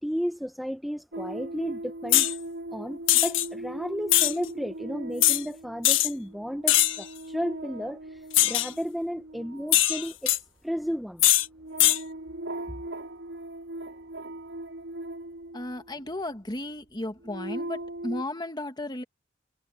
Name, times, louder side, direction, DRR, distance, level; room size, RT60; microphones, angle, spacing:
voice 1, 0.0-2.3 2.7-10.3 10.6-11.2, equal, ahead, 0.6 m, -33 dB
sound 1, 1.1-16.2 16.9-18.2, right 1 dB, 80° right, 3.4 m, -39 dB
sound 2, 2.1-2.3 3.1-3.5 4.1-4.3 5.2-5.4 5.8-6.1 6.7-7.0 8.3-8.7 9.7-10.4 11.2-11.5 11.8-12.0, left 14 dB, 90° left, 1.3 m, -21 dB
voice 2, 15.5-19.0, left 1 dB, 25° left, 1.8 m, -34 dB
head